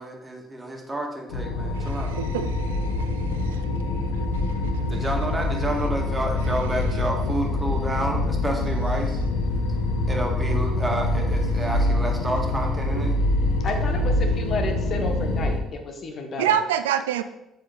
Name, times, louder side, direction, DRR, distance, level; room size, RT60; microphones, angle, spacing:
voice 1, 0.0-2.1 4.9-9.2 10.1-13.1, right 1 dB, 20° right, 1 dB, 2.0 m, -30 dB
sound 1, 1.3-15.6, left 2 dB, 75° left, 1.0 m, -25 dB
voice 2, 1.8-3.7 4.0-4.5 12.9-13.1 16.4-17.2, right 9 dB, 80° right, 11 dB, 0.3 m, -28 dB
voice 3, 13.6-16.6, left 3 dB, 50° left, 5 dB, 1.2 m, -31 dB
7.4 x 5.3 x 4.0 m, 0.88 s
hypercardioid pair, 55°, 0 cm